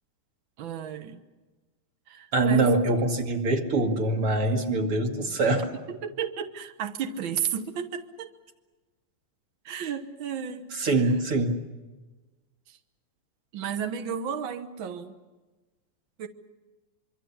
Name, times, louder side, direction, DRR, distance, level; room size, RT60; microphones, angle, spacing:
voice 1, 0.6-1.2 2.1-2.7 5.9-8.3 9.6-10.7 10.9-11.2 12.7-12.8 13.5-15.1 16.2-16.3, right 8 dB, 85° right, 7 dB, 1.0 m, -33 dB
voice 2, 2.3-5.7 10.7-11.6, right 2 dB, 40° right, 4 dB, 2.7 m, -24 dB
25.5 x 24.0 x 7.3 m, 1.2 s
omnidirectional pair, 4.2 m